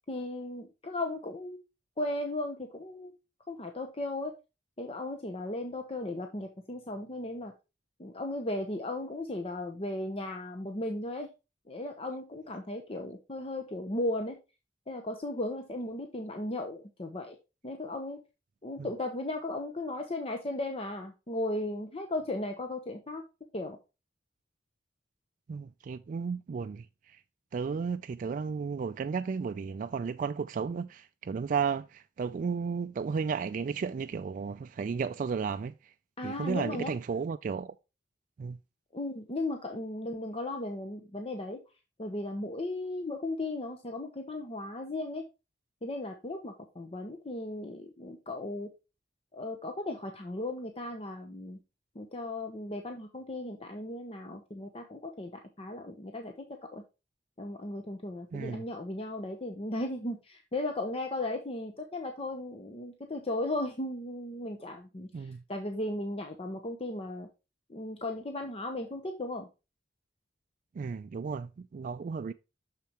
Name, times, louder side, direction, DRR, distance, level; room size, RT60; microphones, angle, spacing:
voice 1, 0.1-1.6 2.0-3.1 3.5-4.3 4.8-7.5 8.0-11.3 11.7-14.4 14.9-17.4 17.6-18.2 18.6-23.2 23.5-23.8 36.2-36.9 38.9-41.6 42.0-45.2 45.8-48.7 49.3-51.6 51.9-55.3 55.6-56.8 57.4-67.3 67.7-69.5, left 1 dB, 35° left, 0.8 m, -36 dB
voice 2, 25.5-26.9 27.5-35.7 36.2-37.7 38.4-38.6 58.3-58.6 65.1-65.4 70.8-72.3, right 5 dB, 45° right, 0.3 m, -33 dB
6.8 x 6.6 x 2.9 m
head